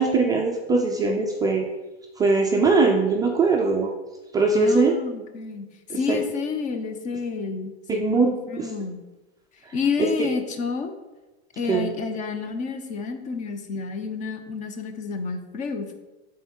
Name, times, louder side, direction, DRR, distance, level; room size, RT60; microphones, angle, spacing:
voice 1, 0.0-1.7 2.2-3.9 4.3-4.9 5.9-6.2 7.9-8.3 8.6-8.7 9.7-10.3 11.6-11.9, right 3 dB, 10° right, 1 dB, 0.3 m, -21 dB
voice 2, 4.6-5.7 5.9-9.0 9.7-10.9 11.6-16.0, left 4 dB, 25° left, 7 dB, 0.7 m, -29 dB
8.0 x 3.8 x 4.5 m, 1.1 s
supercardioid pair, 140°, 32 cm